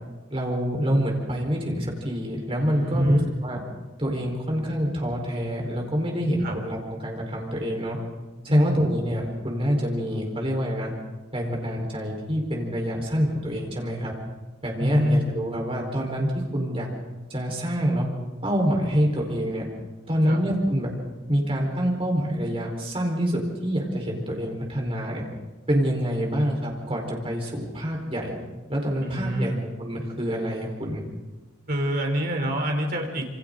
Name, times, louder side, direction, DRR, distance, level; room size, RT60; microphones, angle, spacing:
voice 1, 0.3-3.6 4.0-8.0 8.4-10.9 11.3-14.1 14.6-16.9 17.3-18.1 18.4-19.7 20.1-20.9 21.3-25.2 25.7-28.4 28.7-29.5 29.8-31.0, equal, 30° right, 0 dB, 4.6 m, -26 dB
voice 2, 2.6-3.3 6.4-6.6 8.5-8.8 14.8-15.3 20.3-20.4 29.0-29.7 31.7-33.3, equal, 50° right, 2 dB, 3.6 m, -25 dB
27.5 x 25.0 x 4.0 m, 1.2 s
head